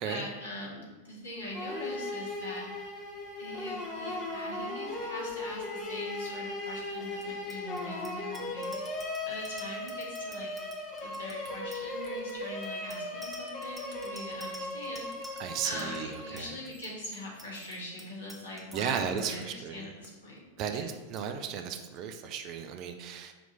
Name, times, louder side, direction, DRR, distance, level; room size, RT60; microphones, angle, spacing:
voice 1, 0.0-2.7 3.4-10.5 11.0-15.4 15.6-20.5 20.7-20.9, left 1 dB, 70° left, -4 dB, 1.8 m, -42 dB
sound 1, 1.5-16.6, left 2 dB, 30° left, 1.2 m, -37 dB
Bicycle bell, 7.2-19.5 19.8-20.1 20.4-20.7 20.9-21.3, right 1 dB, 10° right, 1.0 m, -50 dB
voice 2, 15.4-16.5 18.7-19.9 20.6-23.3, right 7 dB, 40° right, 6 dB, 0.5 m, -35 dB
5.9 x 3.1 x 5.3 m, 1.2 s
figure-of-eight pair, 90°, 0 cm